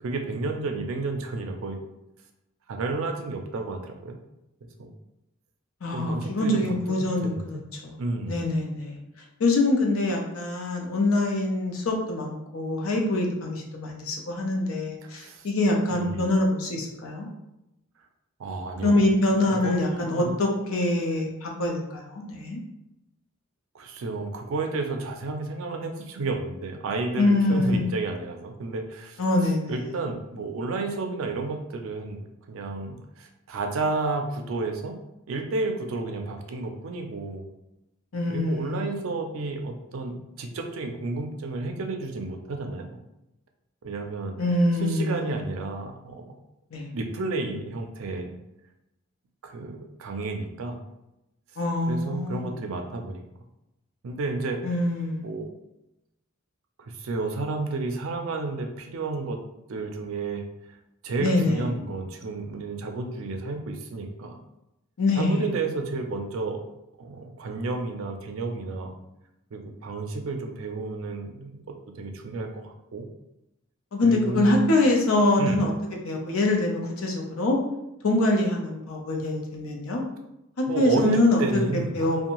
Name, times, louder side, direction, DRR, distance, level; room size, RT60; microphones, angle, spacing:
voice 1, 0.0-1.8 2.7-4.2 4.8-4.9 5.9-7.6 8.0-8.4 15.1-15.4 15.9-16.3 18.4-19.0 19.6-20.3 23.7-29.2 29.7-32.2 32.5-34.9 35.3-37.5 38.3-43.0 43.8-44.4 44.8-46.3 46.9-48.3 49.4-50.8 51.9-53.2 54.0-54.6 55.2-55.5 56.8-59.4 59.7-60.4 61.0-64.4 65.2-66.6 67.0-68.9 69.5-71.6 72.0-73.0 74.0-74.6 75.4-75.7 80.7-82.3, right 3 dB, 80° right, 4 dB, 0.4 m, -31 dB
voice 2, 5.8-8.0 8.3-9.0 9.4-17.3 18.8-22.6 27.2-27.9 29.2-29.9 38.1-39.1 44.4-45.4 46.7-46.9 51.6-52.6 54.6-55.3 61.2-61.7 65.0-65.4 73.9-75.7 76.0-77.6 78.0-80.0 80.6-82.3, left 2 dB, 85° left, 0 dB, 0.6 m, -24 dB
2.6 x 2.2 x 2.9 m, 0.90 s
head